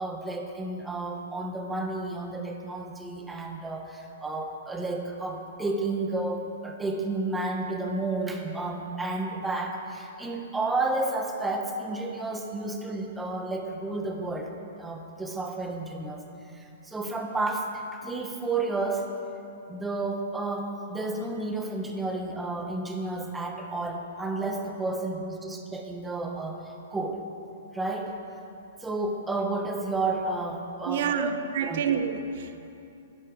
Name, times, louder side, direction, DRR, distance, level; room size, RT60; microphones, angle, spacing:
voice 1, 0.0-14.5 14.8-16.3 16.5-19.1 19.7-27.2 27.7-28.2 28.8-31.3 31.6-31.8, right 2 dB, 10° right, 2 dB, 1.3 m, -31 dB
voice 2, 30.8-32.7, right 7 dB, 60° right, 8 dB, 1.0 m, -28 dB
11.5 x 11.0 x 5.4 m, 2.7 s
hypercardioid pair, 135°, 0 cm